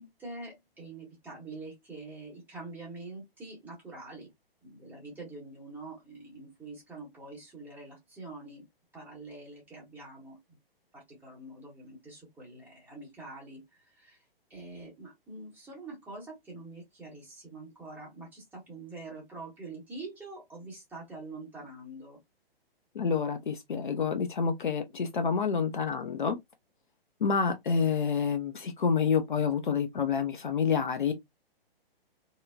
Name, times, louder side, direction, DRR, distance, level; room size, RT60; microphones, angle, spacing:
voice 1, 0.0-4.3 4.6-8.7 8.9-10.6 10.9-13.6 13.9-14.2 14.5-22.2, right 2 dB, 5° right, 1.2 m, -45 dB
voice 2, 22.9-26.4 27.2-31.1, left 6 dB, 55° left, 0.6 m, -28 dB
2.7 x 2.7 x 2.3 m
figure-of-eight pair, 125°, 30 cm